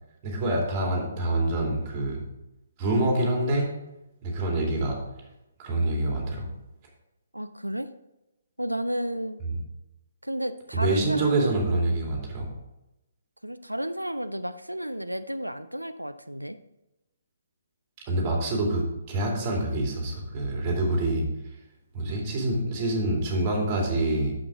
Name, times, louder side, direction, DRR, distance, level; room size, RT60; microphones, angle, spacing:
voice 1, 0.2-2.2 2.8-3.7 4.2-5.0 5.6-6.5 9.4-9.6 10.7-12.5 18.1-21.3 21.9-24.3, right 2 dB, 25° right, -1 dB, 2.5 m, -26 dB
voice 2, 7.3-7.9 8.6-9.4 10.2-12.0 13.4-16.6, equal, 85° right, 11 dB, 0.5 m, -32 dB
8.8 x 7.5 x 3.7 m, 0.93 s
figure-of-eight pair, 135°, 0 cm